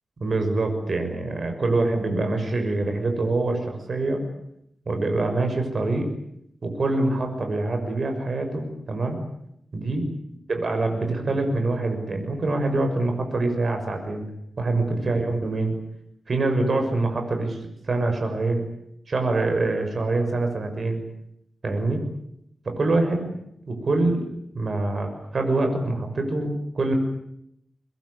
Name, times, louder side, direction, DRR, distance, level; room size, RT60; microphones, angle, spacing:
voice 1, 0.2-4.2 4.9-6.1 6.6-9.2 9.7-10.1 10.5-14.2 14.6-15.7 16.3-17.6 17.9-18.6 19.1-21.0 21.6-22.0 22.6-23.3 23.7-24.3 24.5-26.9, right 2 dB, 50° right, 5 dB, 6.5 m, -25 dB
24.5 x 22.0 x 9.8 m, 0.77 s
wide cardioid pair, 115°, 0 cm